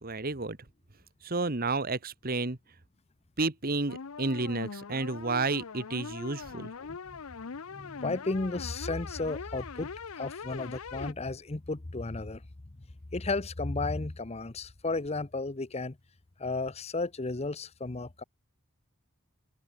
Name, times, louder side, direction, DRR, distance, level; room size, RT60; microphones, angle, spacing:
voice 1, 0.0-0.6 1.2-2.6 3.4-6.7, right 3 dB, 45° right, 1.5 m, -31 dB
sound 1, 3.9-11.1, left 5 dB, 80° left, 0.7 m, -42 dB
voice 2, 7.7-12.4 13.1-16.0 16.4-18.2, left 3 dB, 30° left, 0.8 m, -33 dB
head